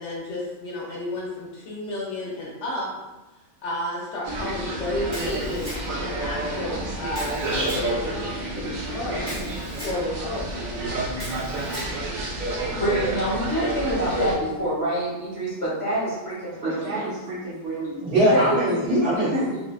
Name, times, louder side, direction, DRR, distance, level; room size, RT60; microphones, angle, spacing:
voice 1, 0.0-2.9 3.6-9.4 9.8-10.8, left 1 dB, 70° left, -4 dB, 0.9 m, -32 dB
sound 1, 4.2-14.4, right 2 dB, 85° right, 0.4 m, -29 dB
Camera, 5.1-6.1 7.1-7.9 9.2-10.0 11.1-11.9, equal, 20° right, 0.8 m, -39 dB
voice 2, 12.7-17.1 18.1-18.7, right 1 dB, 30° left, -10 dB, 0.8 m, -26 dB
voice 3, 16.6-19.6, right 1 dB, 55° right, -8 dB, 1.0 m, -23 dB
2.6 x 2.1 x 2.3 m, 1.1 s
omnidirectional pair, 1.3 m